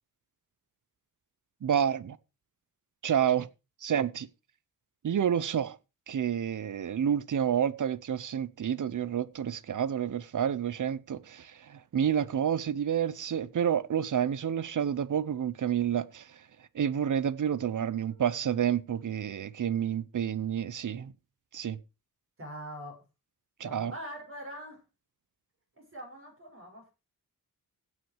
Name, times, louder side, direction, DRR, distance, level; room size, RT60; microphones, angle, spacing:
voice 1, 1.6-2.2 3.0-3.5 3.8-4.3 5.0-5.8 6.1-16.3 16.7-21.1 21.5-21.8 23.6-23.9, right 9 dB, 55° right, 0.8 m, -29 dB
voice 2, 17.8-18.4 22.4-23.0 23.6-24.8 25.8-26.9, equal, 35° right, 6.3 m, -44 dB
16.0 x 6.5 x 4.8 m
wide cardioid pair, 145°, 36 cm